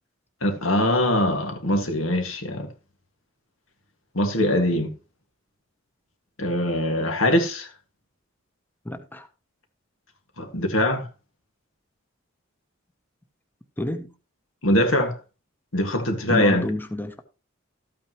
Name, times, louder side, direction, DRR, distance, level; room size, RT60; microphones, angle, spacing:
voice 1, 0.4-2.7 4.1-4.9 6.4-7.7 10.4-11.1 14.6-15.2 15.7-16.7, left 1 dB, 80° left, 2.0 m, -22 dB
voice 2, 8.8-9.3 13.8-14.1 16.2-17.2, left 1 dB, 10° left, 0.8 m, -30 dB
13.0 x 8.8 x 3.0 m
head